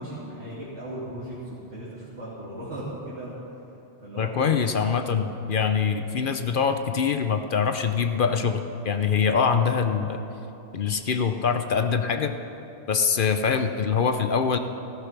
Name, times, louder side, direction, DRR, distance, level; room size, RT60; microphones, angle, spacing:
voice 1, 0.0-3.4 4.0-5.2, right 1 dB, 85° right, -10 dB, 3.2 m, -37 dB
voice 2, 4.2-10.2 10.7-12.4 12.9-14.6, left 6 dB, 55° left, 8 dB, 0.8 m, -24 dB
15.0 x 13.0 x 6.0 m, 2.9 s
omnidirectional pair, 1.1 m